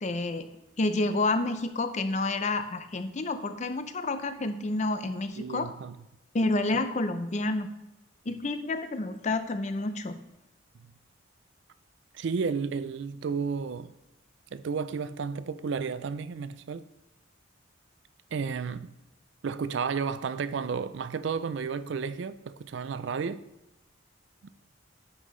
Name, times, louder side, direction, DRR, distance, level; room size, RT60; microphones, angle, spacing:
voice 1, 0.0-0.5 0.8-5.7 6.3-7.7 8.3-10.2, left 2 dB, 35° left, 0.5 m, -29 dB
voice 2, 5.4-6.0 12.1-13.9 14.5-16.9 18.3-18.9 19.4-23.4 24.4-24.5, right 5 dB, 65° right, 0.4 m, -32 dB
9.5 x 5.5 x 3.2 m
head